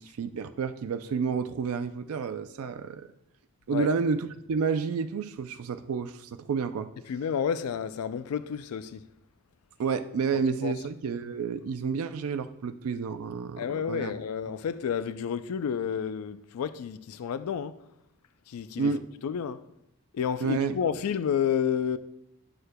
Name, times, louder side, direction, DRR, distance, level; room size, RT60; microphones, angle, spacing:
voice 1, 0.0-3.1 3.7-6.9 9.8-14.1 18.8-19.0 20.4-20.8, right 5 dB, 75° right, 0.4 m, -30 dB
voice 2, 7.1-9.0 10.6-10.7 13.6-17.8 18.5-18.9 19.2-19.6 20.1-22.0, left 7 dB, 90° left, 0.4 m, -30 dB
11.0 x 6.6 x 2.2 m
head